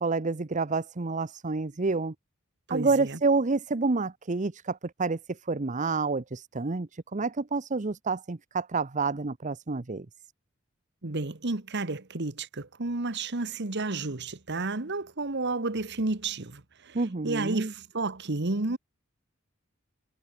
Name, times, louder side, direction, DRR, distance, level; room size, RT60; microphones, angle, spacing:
voice 1, 0.0-2.1 2.7-10.1 16.9-17.7, right 3 dB, 35° right, 0.8 m, -28 dB
voice 2, 2.7-3.2 11.0-17.0 17.2-18.8, right 3 dB, 55° right, 1.5 m, -31 dB
head